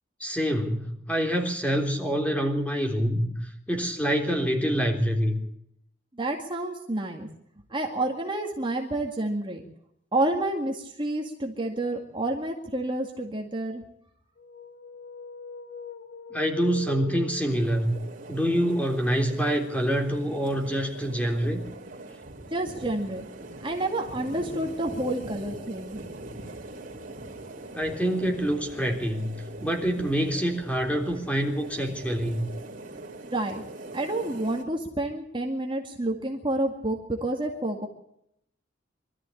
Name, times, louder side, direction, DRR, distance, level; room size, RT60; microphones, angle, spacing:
voice 1, 0.2-5.4 16.3-17.9 18.3-21.7 27.7-32.5, equal, 10° left, 3 dB, 3.6 m, -26 dB
voice 2, 6.2-7.3 7.7-9.6 10.1-13.8 22.5-23.3 23.6-26.0 33.2-33.6 33.9-37.9, right 1 dB, 25° right, 1 dB, 2.1 m, -29 dB
sound 1, 14.4-18.0, left 4 dB, 70° left, 1.6 m, -41 dB
sound 2, 17.5-34.6, right 2 dB, 50° right, 3.5 m, -42 dB
24.0 x 13.5 x 8.5 m, 0.75 s
head